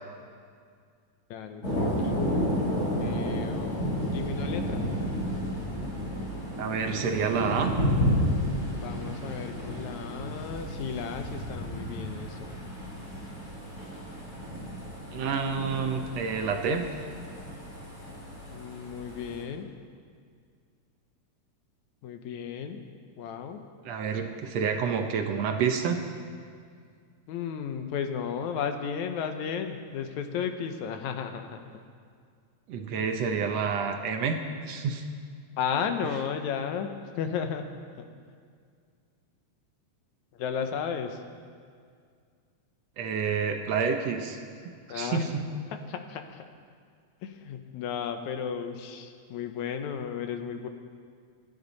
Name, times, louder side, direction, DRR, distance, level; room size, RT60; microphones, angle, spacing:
voice 1, 1.3-2.2 3.0-4.9 8.8-12.7 18.5-19.7 22.0-22.8 23.2-23.6 27.3-31.8 35.6-37.7 38.0-38.1 40.3-41.2 44.9-45.2 45.7-46.5 47.2-50.7, left 7 dB, 80° left, 6 dB, 2.2 m, -34 dB
Thunder, 1.6-19.4, equal, 25° left, 4.1 m, -32 dB
voice 2, 6.6-7.7 15.1-16.9 23.9-26.0 32.7-34.4 34.7-35.0 43.0-44.4 44.9-45.5, right 6 dB, 70° right, 5 dB, 1.9 m, -28 dB
26.5 x 10.5 x 4.1 m, 2.1 s
omnidirectional pair, 3.4 m